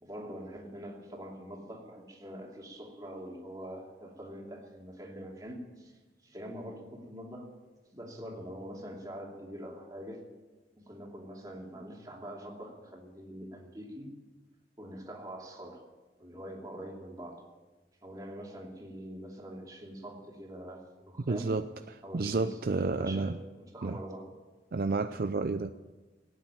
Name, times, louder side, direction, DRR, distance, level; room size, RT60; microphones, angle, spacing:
voice 1, 0.0-5.9 6.2-7.6 7.9-10.2 10.8-14.2 14.8-15.8 16.2-17.5 18.0-21.5 22.0-22.5 22.8-24.3, equal, 20° right, -1 dB, 2.7 m, -44 dB
voice 2, 21.3-23.4 23.8-24.0 24.7-25.7, right 3 dB, 55° right, 9 dB, 0.5 m, -31 dB
17.5 x 9.3 x 8.7 m, 1.2 s
head